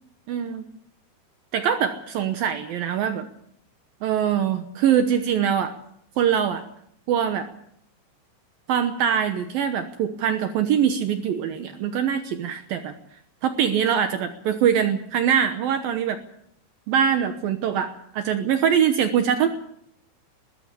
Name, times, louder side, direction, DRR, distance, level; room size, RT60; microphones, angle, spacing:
voice 1, 0.3-0.7 1.5-3.3 4.0-5.7 6.2-6.6 7.1-7.5 8.7-12.9 13.4-16.2 16.9-19.5, right 8 dB, 90° right, 8 dB, 2.0 m, -23 dB
21.5 x 15.0 x 8.3 m, 0.71 s
omnidirectional pair, 5.9 m